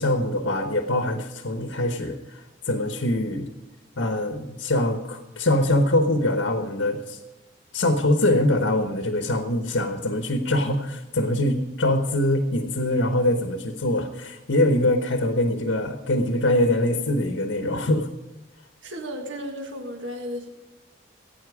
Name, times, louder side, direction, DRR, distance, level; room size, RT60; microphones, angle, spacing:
voice 1, 0.0-3.5 4.0-7.2 7.7-18.1, left 1 dB, 90° left, 6 dB, 1.1 m, -23 dB
voice 2, 18.8-20.5, equal, 80° right, 3 dB, 1.7 m, -34 dB
17.0 x 9.0 x 4.9 m, 1.1 s
head